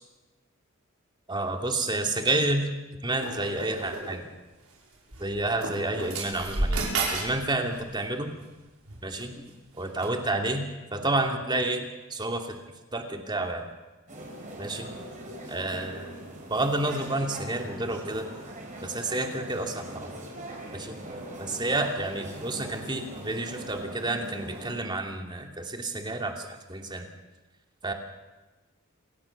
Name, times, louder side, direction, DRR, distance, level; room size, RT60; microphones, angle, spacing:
voice 1, 1.3-2.7 3.0-4.3 5.2-6.8 7.1-8.3 9.0-9.4 9.8-10.7 10.9-12.5 12.9-13.6 14.6-14.9 15.5-16.1 16.5-18.3 18.8-20.1 20.7-21.0 21.4-27.1 27.8-27.9, right 2 dB, 20° right, 3 dB, 2.7 m, -30 dB
sound 1, 3.2-4.2 5.1-5.2 5.6-7.4 7.7-8.0 8.9-9.2 10.0-10.1, right 3 dB, 85° right, 6.2 m, -31 dB
sound 2, 14.1-24.8, right 1 dB, 35° right, 5.9 m, -41 dB
27.5 x 16.5 x 7.3 m, 1.2 s
head